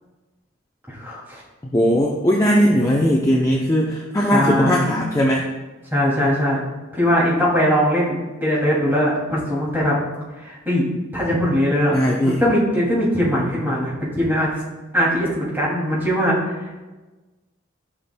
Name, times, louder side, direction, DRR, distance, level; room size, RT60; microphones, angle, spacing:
voice 1, 0.9-1.4 4.3-4.9 5.9-6.6 6.9-10.0 10.4-10.9 11.1-12.0 12.2-14.5 14.9-16.7, equal, 10° right, -7 dB, 2.5 m, -20 dB
voice 2, 1.7-5.5 11.9-12.4, equal, 15° left, -2 dB, 0.5 m, -18 dB
13.5 x 5.9 x 2.2 m, 1.2 s
head